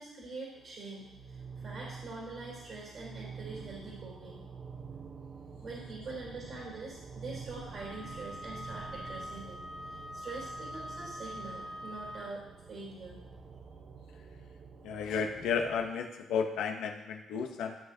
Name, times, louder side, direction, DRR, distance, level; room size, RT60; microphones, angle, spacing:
voice 1, 0.0-4.4 5.6-9.6 9.9-13.2, right 3 dB, 60° right, -6 dB, 3.5 m, -44 dB
sound 1, 0.5-15.9, right 5 dB, 45° right, 0.9 m, -48 dB
Wind instrument woodwind instrument, 7.7-12.5, left 1 dB, 5° right, 1.0 m, -44 dB
voice 2, 14.8-17.8, left 6 dB, 85° left, 4 dB, 0.9 m, -33 dB
14.0 x 6.4 x 2.8 m, 0.91 s
cardioid pair, 90°, 0 cm